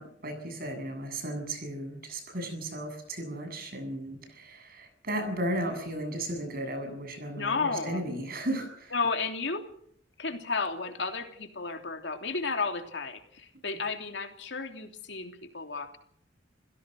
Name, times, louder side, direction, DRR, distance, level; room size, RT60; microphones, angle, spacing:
voice 1, 0.0-8.9, right 1 dB, 50° right, 6 dB, 7.7 m, -35 dB
voice 2, 7.3-8.0 8.9-9.7 10.2-16.0, left 4 dB, 65° left, 5 dB, 3.1 m, -33 dB
28.0 x 16.5 x 6.5 m, 0.64 s
head